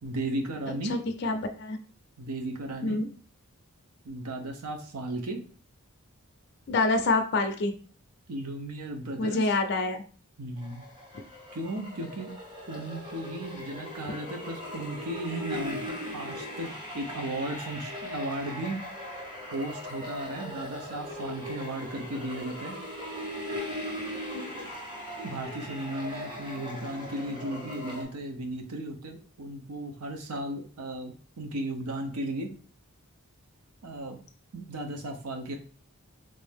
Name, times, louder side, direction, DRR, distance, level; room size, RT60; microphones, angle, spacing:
voice 1, 0.0-0.9 2.2-3.0 4.0-5.4 8.3-9.5 10.4-10.9 11.5-12.3 12.7-18.8 19.5-22.8 25.2-32.5 33.8-34.2 34.5-35.6, right 1 dB, 90° right, 4 dB, 0.8 m, -35 dB
voice 2, 0.7-1.8 2.8-3.1 6.7-7.7 9.2-10.0 24.3-24.4, left 3 dB, 50° left, 5 dB, 0.4 m, -27 dB
sound 1, 10.6-28.0, left 1 dB, 20° right, 0.9 m, -39 dB
3.3 x 2.6 x 3.4 m, 0.41 s
head